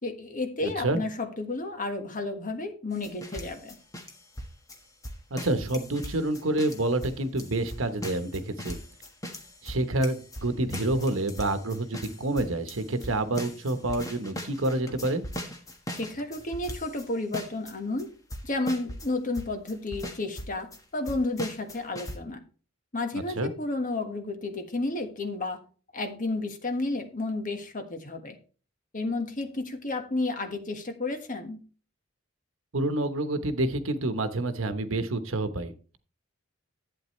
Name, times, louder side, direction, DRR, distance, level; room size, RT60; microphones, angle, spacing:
voice 1, 0.0-3.7 15.9-18.1 18.4-20.7 20.9-22.4 22.9-25.6 25.9-28.4 28.9-31.6, left 2 dB, 40° left, 6 dB, 1.5 m, -31 dB
voice 2, 0.6-1.0 5.3-8.8 9.6-15.2 23.1-23.5 32.7-36.0, right 2 dB, 80° right, 10 dB, 1.1 m, -28 dB
sound 1, 2.9-17.1 17.3-17.7 18.0-18.1 18.3-19.1 19.3-20.8 21.1-22.2, equal, 15° left, 1.4 m, -39 dB
11.5 x 8.7 x 3.2 m, 0.38 s
head